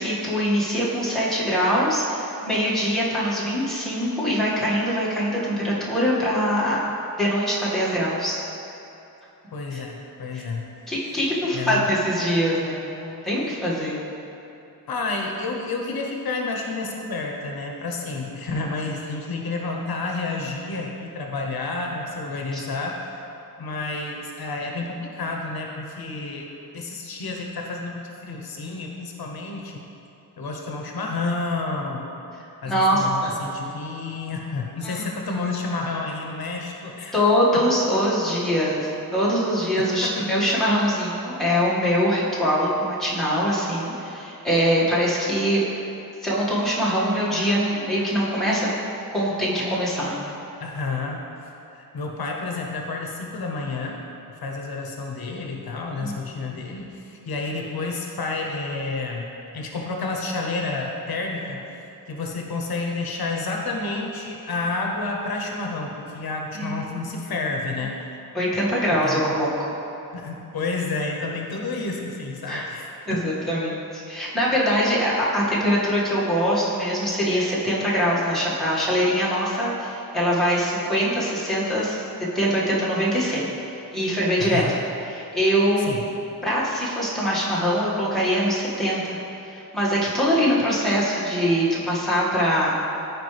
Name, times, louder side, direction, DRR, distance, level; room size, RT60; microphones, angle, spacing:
voice 1, 0.0-6.8 7.2-8.4 9.7-9.8 10.3-10.4 10.9-14.1 22.5-22.6 32.6-33.4 34.8-35.1 37.1-45.6 46.2-48.7 49.1-50.1 56.0-56.1 56.5-56.6 66.5-66.9 68.3-69.5 72.5-72.6 73.1-82.0 82.3-83.5 83.9-84.6 85.1-85.9 86.4-89.2 89.7-92.7, equal, ahead, -9 dB, 1.8 m, -23 dB
voice 2, 9.5-10.7 11.5-11.9 14.9-23.1 23.6-26.5 26.7-29.8 30.4-32.1 32.6-37.2 40.0-40.2 50.6-54.0 54.3-59.3 59.5-61.6 62.1-68.0 69.0-69.3 70.1-73.4 84.4-84.8 85.8-86.1, left 3 dB, 75° left, 1 dB, 0.9 m, -30 dB
13.5 x 4.9 x 3.3 m, 2.9 s
wide cardioid pair, 135°, 37 cm